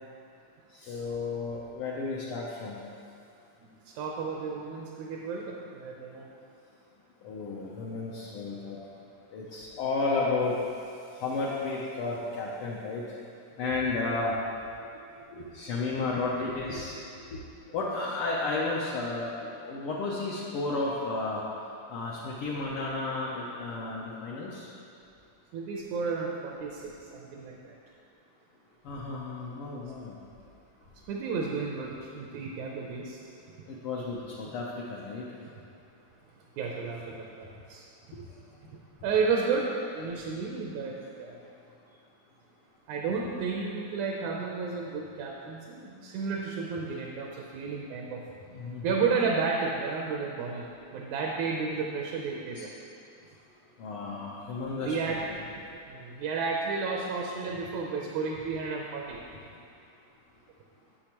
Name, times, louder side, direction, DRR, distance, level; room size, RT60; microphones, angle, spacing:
voice 1, 0.7-2.8 7.2-8.8 9.3-10.6 11.1-13.1 13.6-14.4 15.1-17.4 17.7-21.4 21.9-24.7 28.8-30.2 33.7-35.3 38.1-38.2 48.5-49.1 52.6-52.7 53.8-55.4, left 3 dB, 80° left, -5 dB, 1.2 m, -33 dB
voice 2, 3.6-6.3 13.6-13.7 25.5-27.8 31.1-33.3 36.6-37.8 39.0-41.5 42.9-48.2 48.8-52.7 54.7-55.2 55.9-59.2, right 5 dB, 80° right, -1 dB, 2.0 m, -32 dB
9.7 x 6.9 x 2.9 m, 2.5 s
omnidirectional pair, 3.3 m